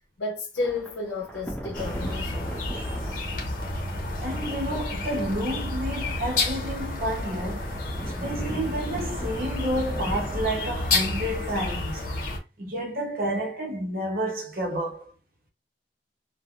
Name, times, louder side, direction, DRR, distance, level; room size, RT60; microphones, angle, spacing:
voice 1, 0.2-2.5, left 3 dB, 90° left, 0.7 m, -32 dB
Thunder / Rain, 0.6-11.9, equal, 5° left, 0.5 m, -40 dB
sound 1, 1.7-12.4, left 2 dB, 50° left, 0.8 m, -30 dB
voice 2, 4.2-7.7 8.2-12.1 12.6-15.1, right 1 dB, 55° right, 0.8 m, -30 dB
3.2 x 2.1 x 2.4 m
head